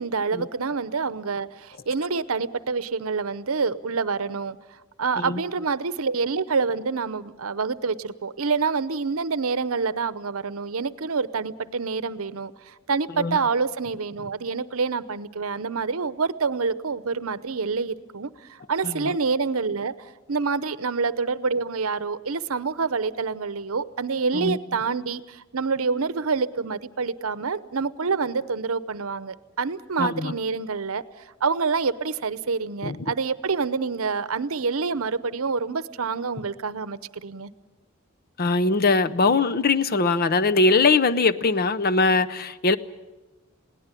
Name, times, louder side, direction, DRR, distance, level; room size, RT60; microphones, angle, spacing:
voice 1, 0.0-4.6 5.0-31.0 31.4-37.5, right 4 dB, 75° right, 16 dB, 0.8 m, -27 dB
voice 2, 18.8-19.2 24.3-24.6 30.0-30.3 32.8-33.1 38.4-42.8, left 3 dB, 45° left, 12 dB, 0.7 m, -21 dB
21.5 x 17.5 x 9.0 m, 1.1 s
head